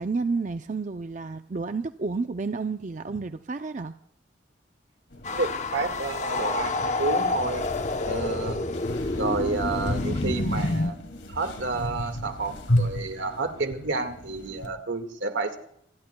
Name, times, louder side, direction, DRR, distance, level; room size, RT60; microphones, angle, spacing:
voice 1, 0.0-3.9, right 4 dB, 40° right, 8 dB, 0.5 m, -30 dB
sound 1, 5.1-14.7, left 1 dB, 90° left, 2.3 m, -34 dB
sound 2, 5.2-10.9, left 2 dB, 40° left, 0.8 m, -28 dB
voice 2, 5.3-7.6 8.1-8.6 9.2-11.0 11.3-15.6, right 3 dB, 85° right, 7 dB, 1.8 m, -30 dB
27.5 x 20.5 x 2.3 m, 0.70 s
head